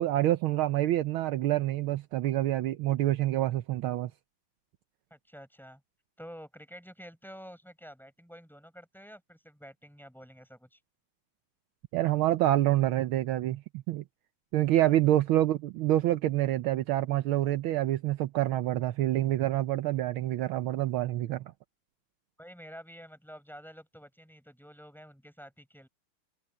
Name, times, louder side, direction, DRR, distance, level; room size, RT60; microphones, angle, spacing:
voice 1, 0.0-4.1 11.9-13.6 13.9-14.0 14.5-21.5, right 14 dB, 75° right, 1.5 m, -27 dB
voice 2, 5.1-5.8 6.2-10.8 14.8-15.0 22.4-25.9, equal, ahead, 7.5 m, -49 dB
omnidirectional pair, 2.4 m